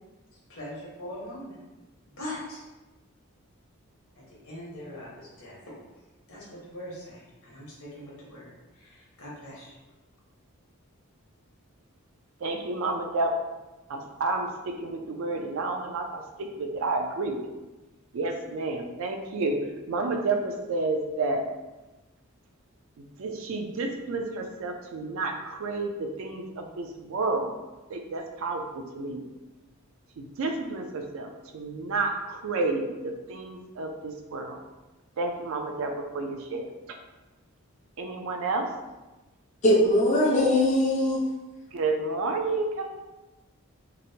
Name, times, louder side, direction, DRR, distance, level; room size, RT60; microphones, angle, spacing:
voice 1, 0.5-1.6 2.1-2.6 4.2-5.6 6.3-9.7, left 1 dB, 75° left, -6 dB, 1.1 m, -41 dB
voice 2, 12.4-13.3 13.9-17.5 18.1-19.6 19.9-21.4 23.0-27.5 27.9-29.2 30.2-31.3 31.5-34.6 35.2-36.6 38.0-38.7 41.7-42.8, right 3 dB, 65° right, 4 dB, 0.4 m, -30 dB
voice 3, 39.6-41.2, left 1 dB, 30° left, -5 dB, 0.4 m, -21 dB
2.9 x 2.1 x 2.7 m, 1.1 s
head